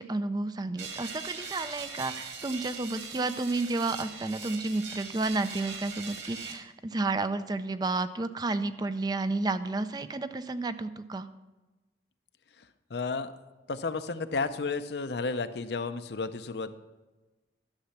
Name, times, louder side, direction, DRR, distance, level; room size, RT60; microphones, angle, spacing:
voice 1, 0.0-11.3, right 3 dB, 20° right, 12 dB, 0.4 m, -31 dB
sound 1, 0.8-6.5, right 5 dB, 80° right, 1.8 m, -41 dB
voice 2, 12.9-13.3 13.7-16.7, left 4 dB, 65° left, 10 dB, 0.6 m, -32 dB
11.5 x 7.0 x 5.7 m, 1.1 s
head